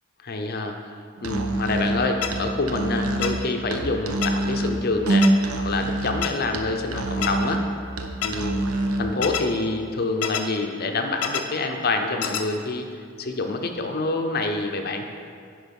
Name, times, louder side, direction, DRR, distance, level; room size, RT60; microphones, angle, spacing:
voice 1, 0.2-0.8 1.2-7.6 8.2-8.6 9.0-12.9 13.2-15.1, left 3 dB, 45° left, 4 dB, 0.6 m, -27 dB
Musical instrument, 1.2-9.1, right 1 dB, 80° right, 0.7 m, -26 dB
sound 1, 2.2-2.3 3.2-3.3 4.2-4.3 5.2-5.3 6.2-6.3 7.2-7.3 8.2-8.3 9.2-9.4 10.2-10.4 11.2-11.4 12.2-12.4, left 9 dB, 85° left, 0.7 m, -26 dB
10.5 x 4.7 x 5.3 m, 2.3 s
head